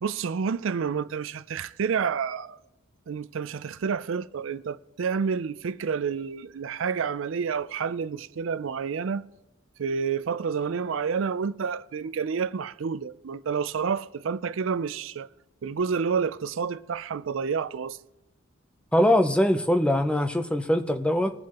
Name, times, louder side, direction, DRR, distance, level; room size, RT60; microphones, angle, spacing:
voice 1, 0.0-2.6 3.1-9.3 9.8-15.3 15.6-18.0, right 6 dB, 70° right, 0.4 m, -29 dB
voice 2, 18.9-21.3, left 1 dB, 5° left, 0.6 m, -22 dB
22.0 x 7.5 x 3.0 m
head